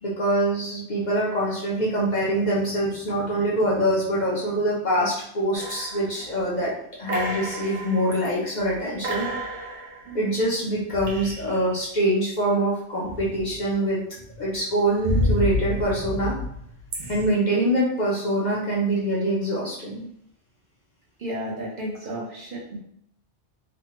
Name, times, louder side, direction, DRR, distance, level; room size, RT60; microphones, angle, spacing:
voice 1, 0.0-6.7 7.0-9.3 10.1-14.0 14.4-16.4 17.1-20.0, right 1 dB, 45° left, -5 dB, 0.7 m, -24 dB
sound 1, 5.5-6.5 7.1-8.3 8.7-8.8 9.0-11.7 13.0-13.8 14.2-17.3, left 1 dB, 80° right, 1.0 m, -30 dB
voice 2, 21.2-22.8, equal, 55° right, -5 dB, 0.9 m, -32 dB
3.1 x 2.1 x 2.9 m, 0.70 s
omnidirectional pair, 1.2 m